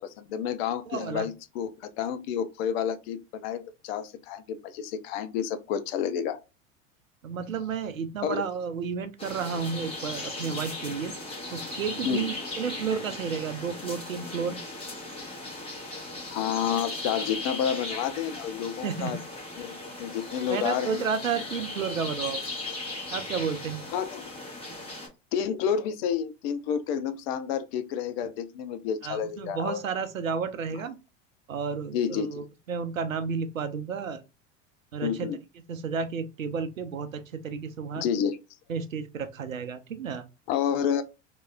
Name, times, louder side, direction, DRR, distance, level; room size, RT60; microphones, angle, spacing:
voice 1, 0.0-6.4 8.2-8.4 12.0-12.3 16.3-19.2 19.6-19.7 20.0-21.0 23.9-24.3 25.3-29.8 31.9-32.3 35.0-35.4 38.0-38.4 40.5-41.0, left 8 dB, 50° left, 0.6 m, -30 dB
voice 2, 0.9-1.3 7.2-11.1 11.5-14.6 18.8-19.2 20.5-22.4 23.1-23.9 29.0-30.9 31.5-34.2 34.9-35.3 35.7-38.0 38.7-40.2, right 6 dB, 85° right, 0.6 m, -32 dB
sound 1, 9.2-25.1, left 2 dB, 15° left, 1.7 m, -37 dB
3.3 x 2.9 x 2.3 m
figure-of-eight pair, 80°, 39 cm